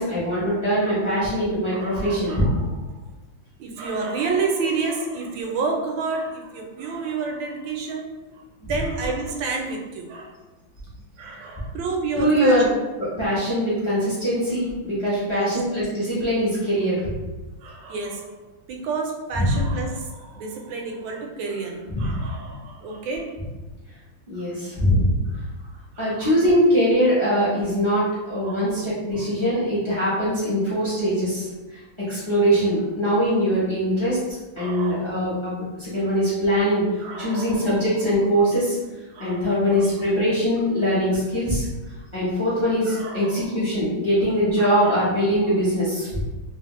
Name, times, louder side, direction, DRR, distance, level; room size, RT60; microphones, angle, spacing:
voice 1, 0.0-2.4 8.6-8.7 12.2-12.7 13.0-17.1 19.4-19.6 21.9-22.2 24.3-25.2 26.0-31.5 32.1-34.2 34.6-36.8 37.2-38.8 39.2-41.6 42.1-46.2, equal, 45° left, -10 dB, 0.3 m, -22 dB
voice 2, 1.7-2.5 3.6-8.1 8.6-10.3 11.2-12.6 15.2-15.5 17.6-18.3 18.7-23.3 26.0-26.3 28.4-28.9 29.1-29.3 34.6-35.1 37.0-37.7 39.1-39.4 39.8-39.9 42.8-43.5 44.6-45.0, right 4 dB, 80° right, 1 dB, 1.3 m, -30 dB
3.3 x 2.1 x 2.9 m, 1.1 s
omnidirectional pair, 2.1 m